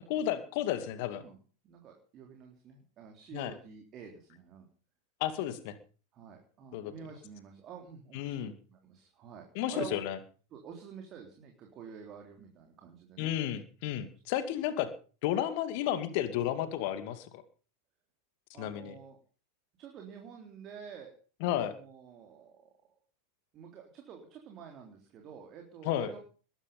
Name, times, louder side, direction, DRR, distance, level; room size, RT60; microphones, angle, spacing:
voice 1, 0.1-1.2 3.3-3.5 5.2-5.7 6.7-6.9 8.1-8.5 9.5-10.2 13.2-14.9 15.2-17.4 18.6-19.0 21.4-21.7 25.8-26.1, left 11 dB, 45° left, 12 dB, 2.3 m, -32 dB
voice 2, 1.6-4.7 6.1-10.0 10.5-13.3 18.5-19.2 19.8-21.1 21.5-22.7 23.5-26.2, right 7 dB, 30° right, 2 dB, 3.6 m, -48 dB
21.0 x 11.0 x 5.5 m, 0.39 s
figure-of-eight pair, 90°, 0 cm